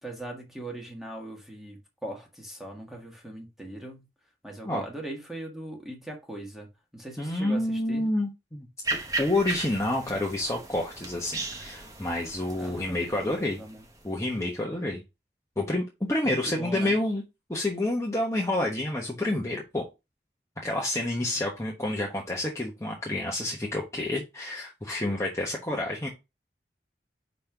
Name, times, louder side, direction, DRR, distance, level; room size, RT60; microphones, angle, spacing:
voice 1, 0.0-4.1 4.4-8.1 12.6-13.8 16.2-17.0, right 1 dB, ahead, 1.6 m, -40 dB
voice 2, 7.2-8.7 9.2-13.6 14.0-15.0 15.6-17.2 17.5-19.9 20.6-26.1, left 1 dB, 15° left, 1.1 m, -29 dB
sound 1, 8.8-14.4, right 2 dB, 20° right, 1.0 m, -36 dB
5.3 x 4.1 x 5.9 m
head